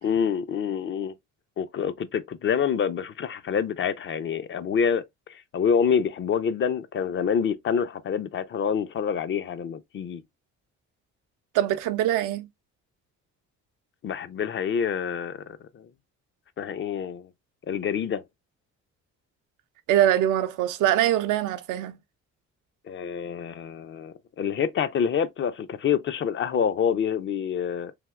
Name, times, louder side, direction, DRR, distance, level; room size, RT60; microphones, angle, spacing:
voice 1, 0.0-1.1 1.6-10.2 14.0-15.4 15.7-15.9 16.6-17.3 17.7-18.2 22.9-27.9, left 7 dB, 40° left, 0.4 m, -27 dB
voice 2, 11.5-12.5 19.9-22.0, right 12 dB, 90° right, 0.5 m, -23 dB
3.4 x 2.7 x 2.2 m
cardioid pair, 90°, 30 cm